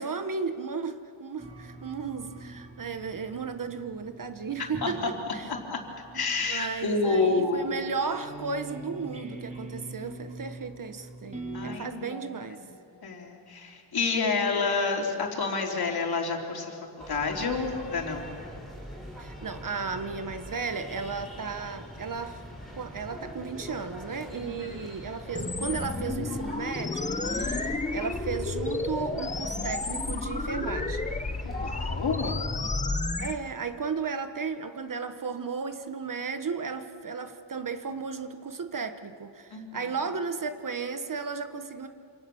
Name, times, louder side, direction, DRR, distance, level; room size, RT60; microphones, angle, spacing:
voice 1, 0.0-5.5 6.1-6.2 6.5-12.6 19.2-22.4 22.7-31.0 32.6-32.7 33.2-41.9, right 5 dB, 45° right, 1.2 m, -34 dB
sound 1, 1.4-11.8, right 2 dB, 15° right, 3.1 m, -44 dB
voice 2, 6.1-7.7 11.5-12.3 12.8-16.8 17.1-18.4 24.4-24.5 31.4-32.6 39.5-39.9, left 4 dB, 50° left, 3.8 m, -29 dB
sound 2, 17.0-32.3, equal, ahead, 6.0 m, -43 dB
sound 3, 25.3-33.3, left 3 dB, 15° left, 1.0 m, -31 dB
27.5 x 27.5 x 7.1 m
wide cardioid pair, 140°, 46 cm